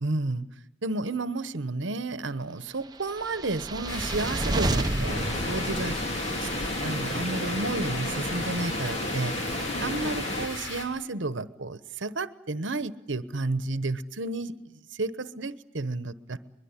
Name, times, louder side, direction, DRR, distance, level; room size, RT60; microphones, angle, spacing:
voice 1, 0.0-0.5 0.8-6.0 6.4-6.5 6.8-16.4, right 2 dB, 65° right, 14 dB, 1.1 m, -32 dB
sound 1, 3.1-6.5, right 2 dB, 20° right, 0.9 m, -30 dB
sound 2, 3.9-10.8, left 2 dB, 85° left, 6.2 m, -37 dB
sound 3, 5.1-10.5, left 1 dB, 35° left, 2.4 m, -32 dB
23.5 x 22.0 x 9.9 m, 0.83 s
head